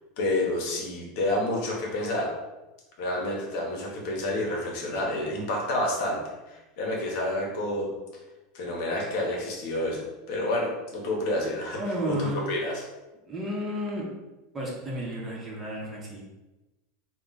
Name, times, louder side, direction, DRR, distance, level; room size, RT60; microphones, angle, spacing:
voice 1, 0.2-2.3 3.0-6.2 6.5-7.9 8.5-12.8, left 1 dB, 65° left, -1 dB, 0.9 m, -29 dB
voice 2, 11.7-12.4 13.3-14.0 14.5-16.2, equal, 25° right, -3 dB, 0.9 m, -32 dB
2.3 x 2.3 x 3.9 m, 1.0 s
hypercardioid pair, 100°, 0 cm